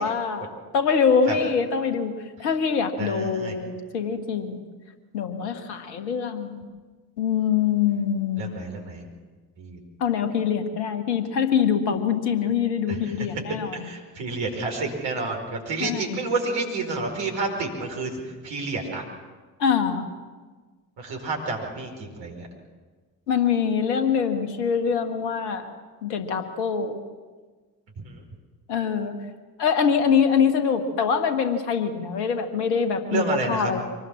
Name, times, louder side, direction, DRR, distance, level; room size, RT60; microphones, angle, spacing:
voice 1, 0.0-2.1 2.4-4.6 5.1-6.6 7.2-8.6 10.0-13.9 15.8-16.2 19.6-20.1 23.3-25.7 26.0-27.0 28.7-29.2 29.6-33.8, left 6 dB, 80° left, 8 dB, 1.8 m, -24 dB
voice 2, 3.0-3.6 8.4-9.0 9.6-9.8 12.9-13.3 13.7-18.1 18.4-19.0 21.0-22.5 28.0-28.2 33.1-33.8, right 3 dB, 65° right, 1 dB, 5.0 m, -29 dB
24.5 x 19.0 x 7.4 m, 1.4 s
figure-of-eight pair, 45°, 48 cm